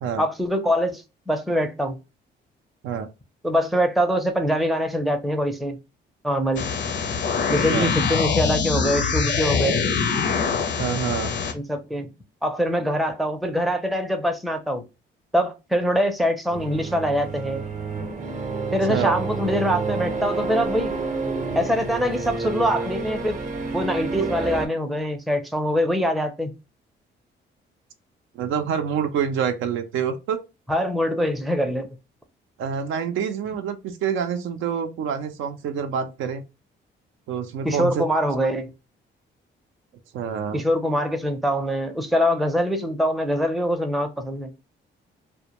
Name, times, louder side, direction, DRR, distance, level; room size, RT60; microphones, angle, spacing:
voice 1, 0.2-2.0 3.4-5.8 6.2-6.6 7.5-9.9 11.5-12.1 12.4-14.8 15.3-17.6 18.7-20.9 21.5-23.4 23.7-26.5 30.7-31.9 37.6-38.7 40.5-44.5, equal, ahead, 0.4 m, -24 dB
sound 1, 6.6-11.5, left 6 dB, 60° left, 0.5 m, -24 dB
voice 2, 10.8-11.3 18.9-19.2 28.4-30.4 32.6-36.4 37.3-38.2 40.1-40.6, right 7 dB, 80° right, 0.4 m, -27 dB
sound 2, 16.5-24.7, right 4 dB, 40° right, 0.6 m, -29 dB
2.1 x 2.1 x 2.9 m
cardioid pair, 90°, 20 cm